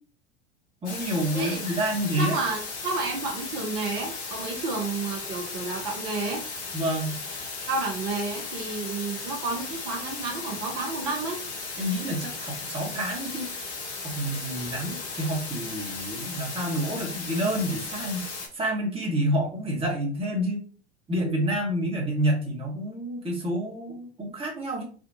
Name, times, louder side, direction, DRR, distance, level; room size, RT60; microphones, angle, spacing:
voice 1, 0.8-2.4 6.7-7.2 11.8-13.5 14.0-20.6 21.1-24.8, right 1 dB, 15° right, -2 dB, 1.2 m, -28 dB
sound 1, 0.9-18.5, left 4 dB, 80° left, 0.9 m, -36 dB
voice 2, 2.2-6.4 7.7-11.4, right 3 dB, 55° right, 0 dB, 1.0 m, -31 dB
3.5 x 2.4 x 2.7 m, 0.42 s
hypercardioid pair, 80°, 33 cm